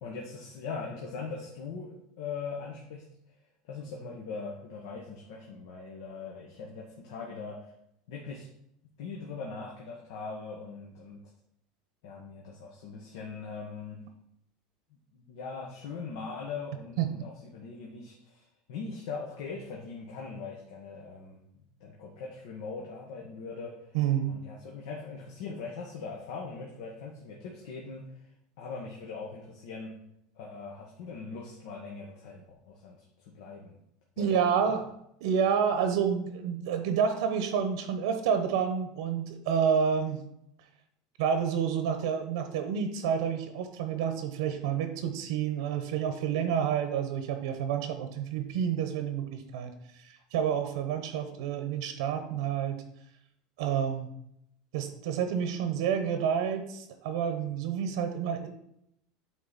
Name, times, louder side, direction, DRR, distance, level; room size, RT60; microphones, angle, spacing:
voice 1, 0.0-3.0 3.7-7.7 8.1-8.5 9.0-11.2 12.0-14.0 15.1-18.4 18.7-21.4 21.8-23.9 24.3-28.0 28.6-29.9 30.3-33.8 34.2-34.7, left 4 dB, 70° left, -2 dB, 1.3 m, -41 dB
voice 2, 23.9-24.4 34.2-34.9 35.2-40.2 41.2-52.8 53.6-54.1 54.7-58.5, right 7 dB, 80° right, 7 dB, 0.9 m, -29 dB
8.6 x 3.8 x 4.1 m, 0.76 s
supercardioid pair, 165°, 3 cm